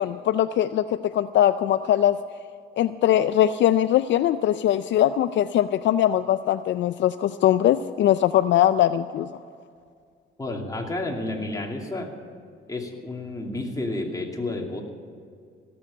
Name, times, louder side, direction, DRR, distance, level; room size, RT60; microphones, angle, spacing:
voice 1, 0.0-2.2 2.8-9.3, left 11 dB, 65° left, 12 dB, 0.4 m, -21 dB
voice 2, 10.4-12.1 12.7-14.8, left 2 dB, 15° left, 0 dB, 2.7 m, -30 dB
18.0 x 7.7 x 8.8 m, 2.2 s
cardioid pair, 90°, 20 cm